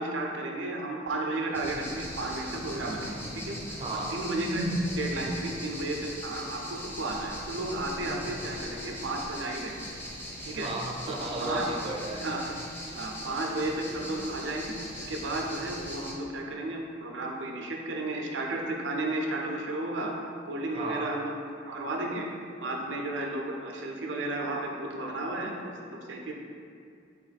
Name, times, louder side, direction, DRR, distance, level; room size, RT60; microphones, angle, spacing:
voice 1, 0.0-3.8 4.1-9.9 10.4-10.7 11.1-11.8 12.2-12.6 12.9-20.1 20.4-22.3 22.6-26.3, right 2 dB, 75° right, 0 dB, 0.6 m, -33 dB
sound 1, 1.5-16.1, equal, 10° left, 0.6 m, -40 dB
voice 2, 3.8-4.2 10.5-12.3 20.7-21.1, right 2 dB, 30° right, -1 dB, 0.5 m, -35 dB
4.2 x 3.0 x 4.0 m, 2.4 s
head